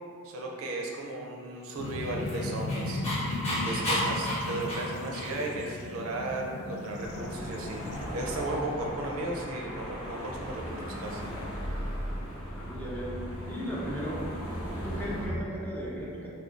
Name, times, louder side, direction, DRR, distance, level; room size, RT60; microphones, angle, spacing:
voice 1, 0.2-3.0 3.5-11.2, right 2 dB, 70° right, -1 dB, 0.4 m, -35 dB
sound 1, 1.8-8.1, left 2 dB, 90° left, 0.3 m, -36 dB
Dog, 1.8-5.6, equal, 30° left, 0.9 m, -32 dB
sound 2, 7.0-15.3, equal, 65° left, 1.0 m, -37 dB
voice 2, 12.5-13.1 13.5-14.2 14.7-16.3, equal, 10° left, -6 dB, 0.4 m, -36 dB
2.5 x 2.3 x 3.6 m, 2.4 s
head